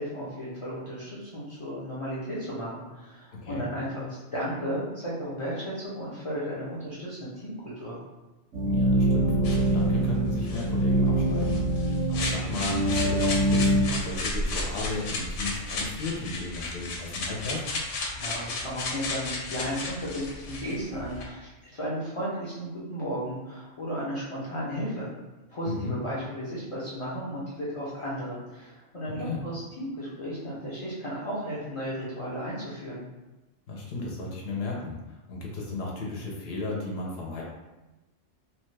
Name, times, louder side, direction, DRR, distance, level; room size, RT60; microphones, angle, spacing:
voice 1, 0.0-8.0 18.1-25.1 25.5-33.0, equal, 40° left, -8 dB, 0.5 m, -34 dB
sound 1, 8.5-13.8, right 1 dB, 85° right, 1.0 m, -24 dB
voice 2, 8.6-17.6 25.6-25.9 29.0-29.4 33.7-37.4, left 3 dB, 65° left, -2 dB, 0.8 m, -35 dB
sound 2, 9.4-21.2, left 2 dB, 85° left, 0.9 m, -34 dB
2.7 x 2.2 x 3.1 m, 1.1 s
omnidirectional pair, 1.2 m